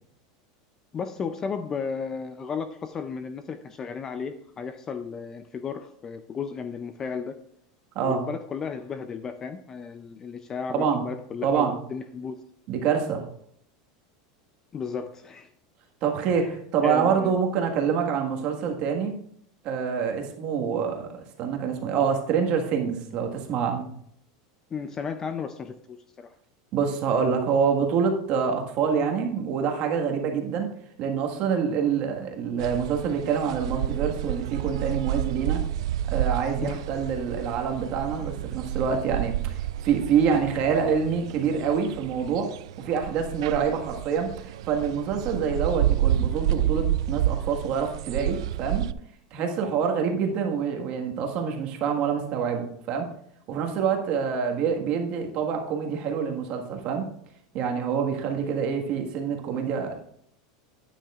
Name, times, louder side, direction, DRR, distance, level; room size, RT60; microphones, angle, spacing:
voice 1, 0.9-7.4 8.0-12.4 14.7-15.5 16.3-16.5 16.8-17.4 24.7-26.3 36.6-36.8 43.5-43.7, left 6 dB, 20° left, 9 dB, 0.4 m, -34 dB
voice 2, 10.7-11.0 11.4-11.7 12.7-13.2 16.0-19.1 19.6-23.9 26.7-30.7 31.0-35.6 36.1-42.5 42.8-48.9 49.3-53.1 53.5-57.0 57.5-60.0, right 6 dB, 40° right, 3 dB, 1.6 m, -26 dB
sound 1, 32.6-48.9, right 12 dB, 80° right, 0.3 m, -30 dB
12.0 x 9.2 x 2.4 m, 0.68 s
supercardioid pair, 170°, 3 cm